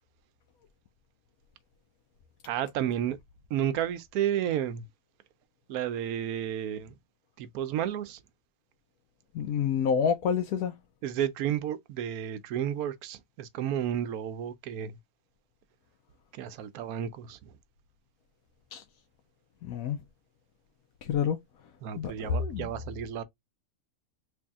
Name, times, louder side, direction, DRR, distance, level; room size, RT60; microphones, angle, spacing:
voice 1, 2.5-3.2 3.5-4.9 5.7-7.0 7.4-8.2 11.0-15.0 16.3-17.5 21.8-23.2, right 10 dB, 85° right, 1.1 m, -32 dB
voice 2, 9.3-10.7 18.7-18.8 19.6-20.0 21.0-21.4 22.0-22.7, left 7 dB, 80° left, 1.1 m, -28 dB
3.4 x 2.6 x 3.4 m
omnidirectional pair, 1.5 m